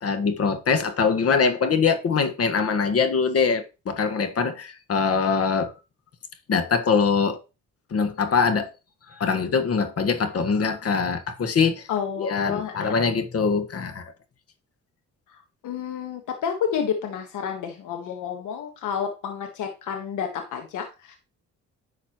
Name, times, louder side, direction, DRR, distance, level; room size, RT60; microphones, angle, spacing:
voice 1, 0.0-5.7 6.5-7.4 7.9-8.7 9.2-11.9 12.2-14.0, left 5 dB, 50° left, 1.6 m, -23 dB
voice 2, 11.9-13.0 15.3-21.1, left 7 dB, 80° left, 1.5 m, -30 dB
10.5 x 6.5 x 3.1 m
cardioid pair, 90°, 30 cm